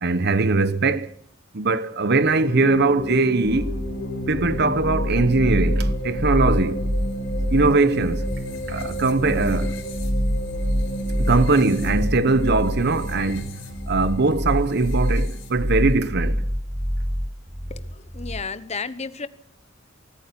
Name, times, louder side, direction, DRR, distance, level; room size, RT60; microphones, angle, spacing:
voice 1, 0.0-1.1 1.5-3.7 4.3-6.9 7.5-8.3 8.7-9.7 11.2-16.4, right 3 dB, 55° right, 1.0 m, -21 dB
sound 1, 2.4-16.0, equal, 75° left, 6.4 m, -32 dB
sound 2, 3.4-18.4, equal, 10° right, 1.3 m, -26 dB
voice 2, 17.7-19.3, left 4 dB, 35° left, 1.2 m, -33 dB
24.0 x 14.0 x 8.5 m
head